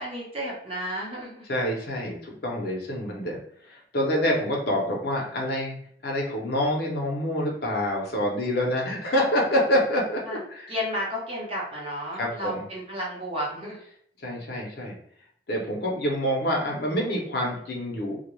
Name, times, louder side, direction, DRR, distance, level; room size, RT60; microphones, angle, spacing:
voice 1, 0.0-1.4 10.3-10.4 10.7-13.8, equal, 30° right, -5 dB, 0.8 m, -32 dB
voice 2, 1.5-3.4 3.7-5.8 6.0-10.7 12.2-12.6 14.2-14.9 15.5-18.2, equal, 60° left, -1 dB, 0.7 m, -27 dB
2.3 x 2.1 x 3.0 m, 0.62 s
head